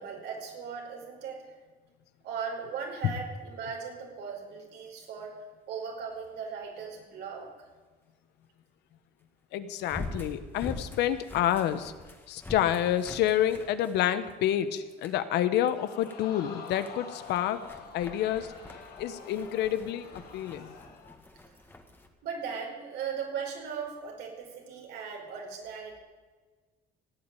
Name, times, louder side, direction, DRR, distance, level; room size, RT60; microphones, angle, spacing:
voice 1, 0.0-1.4 2.2-5.3 5.7-7.5 22.2-26.0, right 6 dB, 80° right, 1 dB, 4.8 m, -38 dB
sound 1, 3.3-3.4 9.8-14.5 14.9-15.2 15.7-16.2 16.6-22.1, left 2 dB, 10° left, 1.9 m, -45 dB
voice 2, 9.5-11.9 12.3-17.6 17.9-18.5 19.0-20.1 20.3-20.7, left 11 dB, 80° left, 12 dB, 1.2 m, -28 dB
Crowd, 15.7-21.2 21.6-21.7, left 5 dB, 65° left, 2.8 m, -47 dB
16.5 x 9.0 x 9.2 m, 1.3 s
cardioid pair, 110°, 17 cm